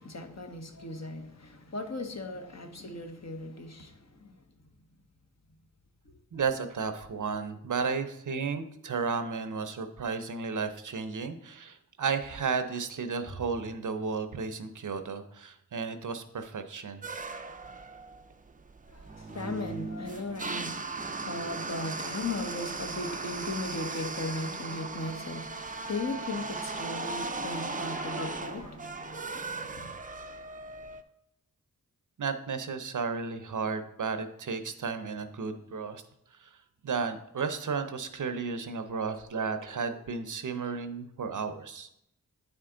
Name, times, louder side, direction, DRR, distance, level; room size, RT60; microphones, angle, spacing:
voice 1, 0.0-4.3 18.9-30.0, left 2 dB, 45° left, 1.1 m, -37 dB
voice 2, 6.3-17.0 32.2-36.0 36.4-36.6 36.8-41.9, right 5 dB, 60° right, 0.7 m, -33 dB
Bowed string instrument, 13.3-15.8, right 2 dB, 30° left, 2.2 m, -51 dB
sound 1, 17.0-31.0, right 3 dB, 25° right, 0.5 m, -38 dB
9.3 x 4.4 x 3.8 m
cardioid pair, 50°, 35 cm